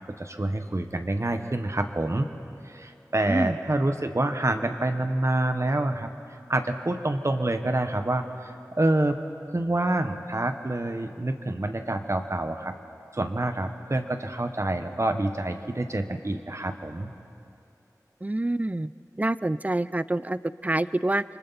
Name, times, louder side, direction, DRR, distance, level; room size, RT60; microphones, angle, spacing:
voice 1, 0.1-2.3 2.6-9.2 9.5-12.7 13.1-17.1, right 1 dB, 50° right, 7 dB, 1.2 m, -27 dB
voice 2, 3.3-3.6 18.2-18.9 19.2-21.2, right 1 dB, 25° right, 16 dB, 0.4 m, -26 dB
27.5 x 24.5 x 4.2 m, 2.8 s
wide cardioid pair, 55°, 7 cm